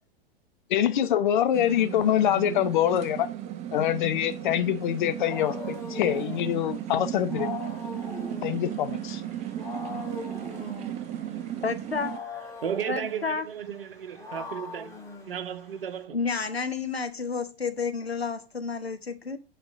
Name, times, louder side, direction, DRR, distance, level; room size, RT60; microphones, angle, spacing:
voice 1, 0.7-3.3 3.7-7.5 8.4-9.2, left 11 dB, 50° left, 0.8 m, -25 dB
sound 1, 1.5-12.2, right 11 dB, 20° right, 0.6 m, -35 dB
Wild animals, 4.8-16.0, left 4 dB, 10° left, 2.2 m, -41 dB
voice 2, 11.6-12.1 12.9-13.4 16.1-19.4, left 5 dB, 85° left, 1.0 m, -30 dB
voice 3, 12.6-15.0 15.3-16.2, right 8 dB, 65° right, 0.9 m, -34 dB
7.9 x 4.3 x 5.1 m
figure-of-eight pair, 100°, 30 cm